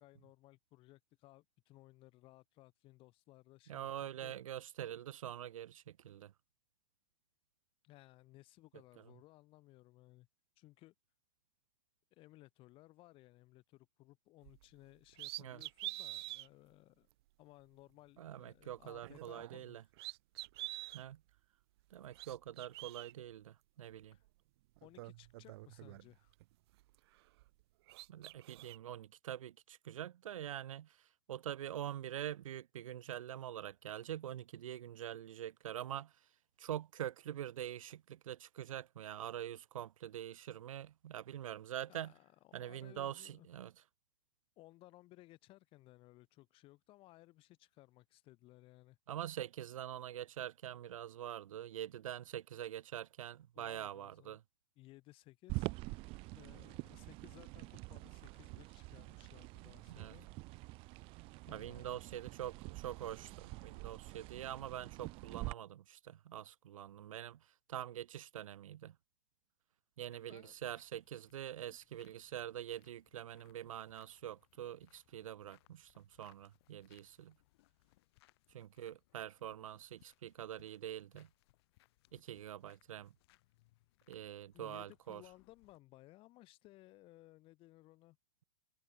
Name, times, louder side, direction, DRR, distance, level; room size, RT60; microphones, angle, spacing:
voice 1, 0.0-4.4 7.8-10.3 10.6-10.9 12.1-17.1 17.4-19.8 24.1-24.2 24.8-26.3 41.9-43.5 44.6-49.0 53.5-54.4 54.8-56.0 56.3-60.3 60.8-61.0 61.5-62.0 70.3-70.6 84.5-88.2, left 18 dB, 30° left, 5.5 m, -60 dB
voice 2, 3.7-6.3 15.4-15.6 18.2-19.8 20.9-21.2 21.9-24.1 28.1-30.9 31.3-36.1 36.6-42.1 42.5-43.7 49.1-54.4 60.0-60.1 61.5-67.4 67.7-68.9 70.0-77.3 78.5-81.3 82.1-83.1 84.1-85.2, right 11 dB, 85° right, 0.9 m, -45 dB
sound 1, 14.4-14.6 15.1-16.5 17.1-17.2 18.9-19.7 19.9-21.0 21.9-23.1 24.3-24.4 24.8-26.4 26.8-27.6 27.9-28.8, right 19 dB, 50° right, 2.1 m, -47 dB
sound 2, 55.5-65.5, right 24 dB, 35° right, 1.0 m, -46 dB
sound 3, 70.1-85.8, left 19 dB, 50° left, 6.7 m, -72 dB
supercardioid pair, 150°, 17 cm